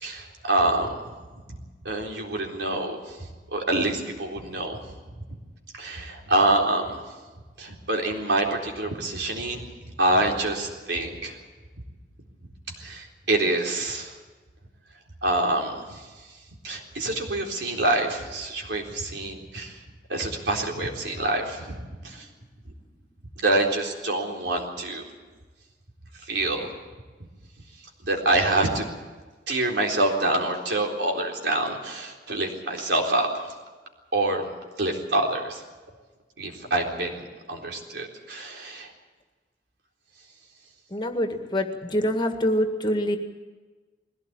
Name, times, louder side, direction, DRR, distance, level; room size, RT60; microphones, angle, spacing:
voice 1, 0.0-0.9 1.8-3.0 3.5-4.8 5.8-7.0 7.6-9.7 10.0-11.4 12.8-14.1 15.2-16.0 16.6-19.8 20.1-22.3 23.4-25.1 26.3-26.7 28.0-28.8 29.5-33.4 34.1-34.5 34.8-35.6 36.4-38.9, right 2 dB, 75° right, 1 dB, 4.0 m, -26 dB
voice 2, 40.9-43.2, equal, 25° left, 5 dB, 1.9 m, -25 dB
21.0 x 17.0 x 8.8 m, 1.3 s
head